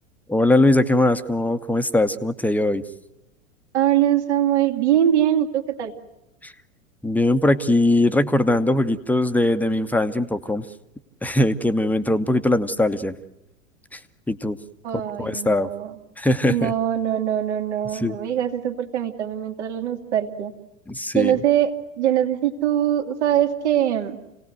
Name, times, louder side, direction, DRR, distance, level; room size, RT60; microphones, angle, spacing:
voice 1, 0.3-2.8 6.4-6.5 7.0-10.6 11.2-13.1 13.9-14.0 14.3-14.6 15.2-15.7 16.2-16.7 18.0-18.2 20.9-21.4, left 1 dB, 5° left, 9 dB, 1.0 m, -20 dB
voice 2, 3.7-5.9 14.8-15.9 16.5-20.5 21.1-24.2, right 11 dB, 60° right, 5 dB, 2.3 m, -22 dB
28.5 x 18.5 x 7.8 m, 0.94 s
figure-of-eight pair, 85°, 39 cm